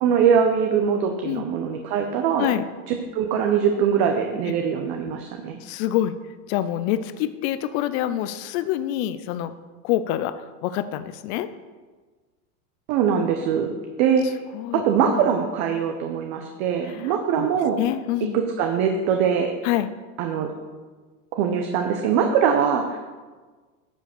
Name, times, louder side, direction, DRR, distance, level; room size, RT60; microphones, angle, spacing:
voice 1, 0.0-2.5 2.9-5.6 12.9-14.4 14.8-17.8 18.3-19.5 20.2-20.5 21.3-23.0, right 7 dB, 50° right, 4 dB, 1.0 m, -22 dB
voice 2, 5.6-9.5 9.8-11.5 14.5-15.2 16.9-17.5 17.8-18.4 19.6-19.9, left 12 dB, 45° left, 12 dB, 0.5 m, -26 dB
10.0 x 5.1 x 6.7 m, 1.4 s
supercardioid pair, 130°, 47 cm